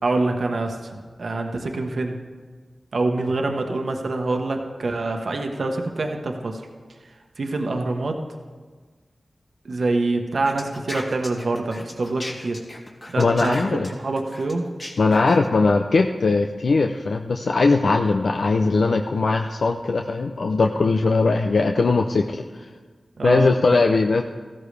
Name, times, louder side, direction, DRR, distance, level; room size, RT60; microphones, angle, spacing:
voice 1, 0.0-0.9 1.2-2.2 2.9-6.6 7.4-8.2 9.6-12.6 13.1-14.7 23.2-23.5, right 2 dB, 75° right, 4 dB, 1.1 m, -25 dB
sound 1, 10.4-15.5, left 1 dB, 35° left, 2.2 m, -37 dB
voice 2, 13.2-13.9 15.0-22.6 23.2-24.2, left 3 dB, 80° left, 4 dB, 0.5 m, -20 dB
15.0 x 13.0 x 3.3 m, 1.5 s
cardioid pair, 45°, 0 cm